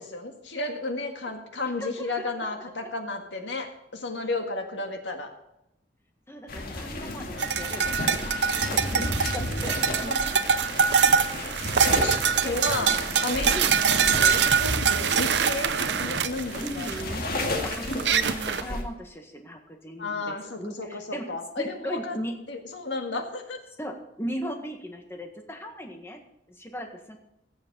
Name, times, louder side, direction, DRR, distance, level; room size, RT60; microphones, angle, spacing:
voice 1, 0.0-5.3 10.1-10.2 11.8-12.9 13.2-16.9 20.0-22.2 22.5-23.6, left 2 dB, 85° left, 4 dB, 1.8 m, -33 dB
voice 2, 1.8-2.5 6.3-8.3 8.7-9.1 9.3-10.6 10.9-11.2 11.9-12.1 12.4-12.6 13.5-13.8 16.6-21.2 21.6-22.3 23.8-26.2 26.5-27.2, equal, 15° left, 4 dB, 1.6 m, -38 dB
sound 1, 6.5-18.8, left 1 dB, 55° left, 2.0 m, -33 dB
sound 2, 7.4-18.6, right 6 dB, 70° right, 0.6 m, -24 dB
16.0 x 7.2 x 5.3 m, 0.84 s
head